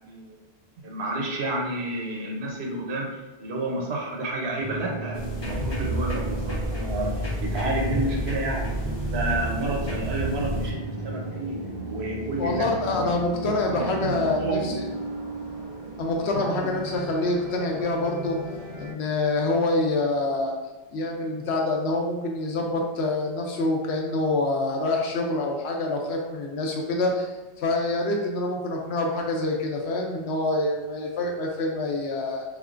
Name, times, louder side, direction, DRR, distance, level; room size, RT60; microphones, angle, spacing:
voice 1, 0.8-8.7 9.1-11.6 11.9-13.1 13.4-15.0, right 2 dB, 85° right, 0 dB, 1.1 m, -30 dB
sound 1, 4.6-18.9, right 1 dB, 60° right, 1.3 m, -35 dB
sound 2, 5.1-10.7, equal, 30° left, 0.5 m, -30 dB
voice 2, 12.4-14.9 16.0-18.4 18.8-20.5 20.9-32.4, left 2 dB, 85° left, 1 dB, 1.0 m, -26 dB
3.6 x 3.4 x 2.5 m, 1.2 s
omnidirectional pair, 1.1 m